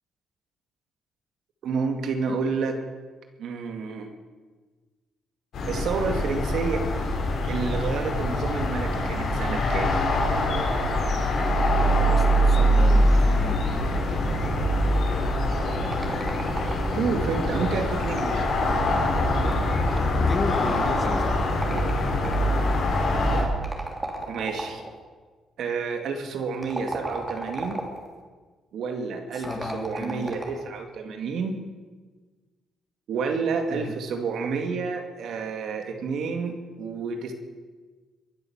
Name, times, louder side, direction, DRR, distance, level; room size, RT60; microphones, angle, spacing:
voice 1, 1.6-2.8 3.4-4.1 5.7-6.9 7.5-10.0 16.9-18.5 24.3-24.8 25.6-27.8 28.7-31.6 33.1-37.3, right 5 dB, 70° right, 5 dB, 2.2 m, -29 dB
sound 1, 5.5-23.4, left 1 dB, 65° left, 4.0 m, -23 dB
voice 2, 11.8-13.6 20.1-21.7 29.3-30.4 33.7-33.9, left 3 dB, 30° left, 7 dB, 1.9 m, -34 dB
sound 2, 15.5-17.1 18.0-19.8 20.8-22.6 23.6-25.0 26.5-28.1 29.4-30.7, right 2 dB, 20° right, 3.2 m, -35 dB
22.5 x 8.1 x 7.2 m, 1.4 s
cardioid pair, 90°, 0 cm